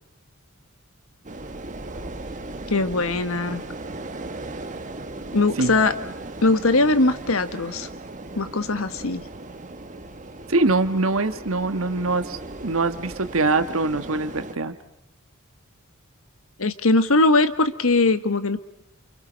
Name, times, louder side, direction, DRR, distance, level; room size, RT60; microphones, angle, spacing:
sound 1, 1.2-14.5, right 2 dB, 35° right, 1.4 m, -37 dB
voice 1, 2.7-3.6 5.3-5.9 6.4-7.9 8.3-9.2 16.6-18.6, left 2 dB, 75° left, 11 dB, 1.4 m, -20 dB
voice 2, 10.5-14.7, right 3 dB, 70° right, 10 dB, 1.5 m, -23 dB
29.0 x 28.5 x 5.2 m, 0.78 s
head